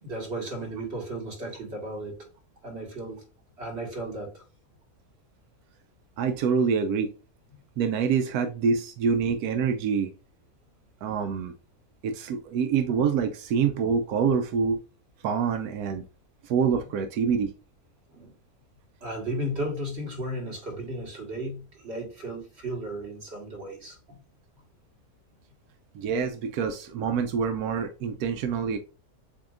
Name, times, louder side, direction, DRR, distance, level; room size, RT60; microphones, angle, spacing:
voice 1, 0.0-2.2 2.6-3.2 3.6-4.4 18.1-18.3 19.0-24.2, right 1 dB, 45° right, 1.8 m, -35 dB
voice 2, 6.2-7.1 7.8-10.1 11.0-11.5 12.0-14.8 15.2-16.0 16.4-17.5 25.9-28.8, right 6 dB, 90° right, 1.1 m, -26 dB
7.2 x 2.9 x 2.4 m
omnidirectional pair, 1.6 m